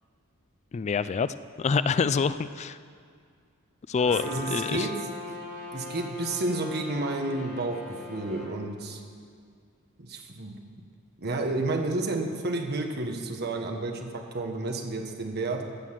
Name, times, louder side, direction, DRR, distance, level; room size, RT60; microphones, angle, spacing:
voice 1, 0.7-2.8 3.9-4.9, left 5 dB, 30° left, 14 dB, 0.3 m, -26 dB
Trumpet, 3.9-8.5, left 2 dB, 10° left, 3.5 m, -40 dB
voice 2, 4.2-4.9 5.7-7.8 8.1-9.0 10.0-10.5 11.2-14.1 14.3-15.6, right 2 dB, 50° right, 3 dB, 1.3 m, -30 dB
15.0 x 6.5 x 7.5 m, 2.2 s
head